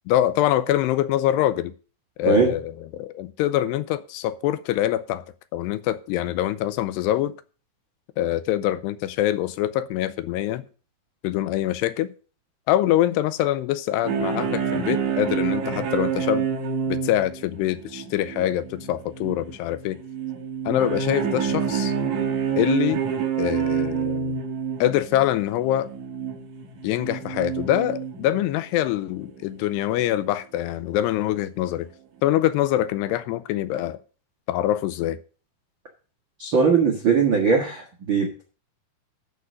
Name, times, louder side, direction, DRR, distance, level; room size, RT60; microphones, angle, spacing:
voice 1, 0.1-1.7 2.2-5.2 5.5-7.3 8.2-10.7 11.2-12.1 12.7-16.5 16.9-20.0 20.7-21.9 22.6-23.0 23.4-24.4 24.8-25.9 26.8-31.9 32.2-34.0 34.5-35.2, left 13 dB, 85° left, 2.6 m, -24 dB
sound 1, 14.0-28.6 29.1-29.4 29.8-29.9 30.3-30.4, right 7 dB, 55° right, 2.4 m, -28 dB
voice 2, 36.4-38.4, right 5 dB, 75° right, 1.1 m, -20 dB
12.5 x 4.7 x 6.3 m
omnidirectional pair, 4.9 m